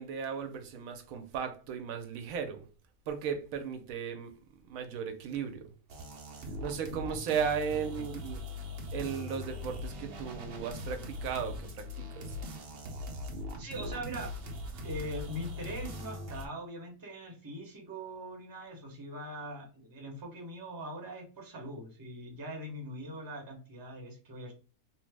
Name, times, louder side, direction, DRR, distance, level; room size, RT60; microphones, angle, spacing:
voice 1, 0.0-2.6 3.1-4.3 4.7-5.7 6.6-8.4 8.9-12.4, right 7 dB, 85° right, 1.0 m, -36 dB
sound 1, 5.9-16.5, left 2 dB, 60° right, 0.7 m, -41 dB
voice 2, 13.6-14.3 14.8-24.5, right 1 dB, 20° right, 0.6 m, -42 dB
3.0 x 2.0 x 3.2 m
omnidirectional pair, 1.4 m